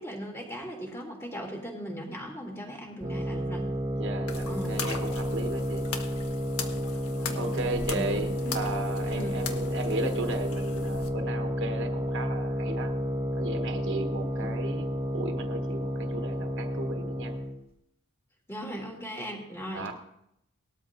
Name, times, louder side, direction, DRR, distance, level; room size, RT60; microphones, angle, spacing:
voice 1, 0.0-3.7 4.5-4.8 7.1-9.4 14.3-14.5 18.5-19.9, equal, 10° left, 0 dB, 2.8 m, -39 dB
sound 1, 3.0-17.6, equal, 25° right, 1.6 m, -31 dB
voice 2, 4.0-5.8 6.6-6.9 7.3-12.9 13.4-14.9 15.1-17.3 19.7-19.9, right 2 dB, 55° right, 4 dB, 1.2 m, -35 dB
sound 2, 4.3-11.1, left 5 dB, 85° left, 1.4 m, -39 dB
20.0 x 13.0 x 2.6 m, 0.80 s
head